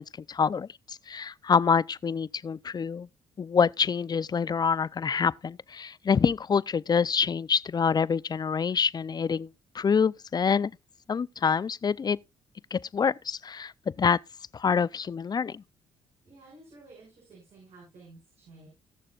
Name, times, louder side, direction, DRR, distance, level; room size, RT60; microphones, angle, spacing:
voice 1, 0.0-3.1 3.4-9.5 9.7-10.7 11.1-12.2 12.7-13.7 14.0-14.2 14.5-15.6, left 6 dB, 35° left, 0.4 m, -26 dB
voice 2, 16.2-18.7, right 2 dB, 55° right, 6.5 m, -52 dB
18.0 x 6.7 x 2.4 m
supercardioid pair, 55°, 12 cm